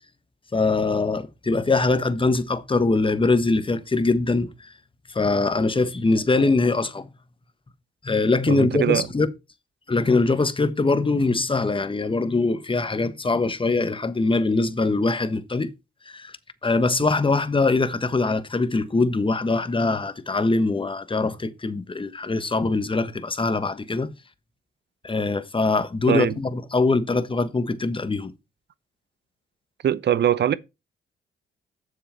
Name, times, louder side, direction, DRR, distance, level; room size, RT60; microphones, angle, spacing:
voice 1, 0.5-4.5 5.1-7.1 8.0-9.3 9.9-15.7 16.1-16.3 16.6-24.1 25.0-28.3, left 3 dB, 25° left, 1.3 m, -22 dB
voice 2, 8.5-9.1 26.1-26.4 29.8-30.5, right 10 dB, 55° right, 0.7 m, -22 dB
7.5 x 7.0 x 4.3 m
supercardioid pair, 50°, 21 cm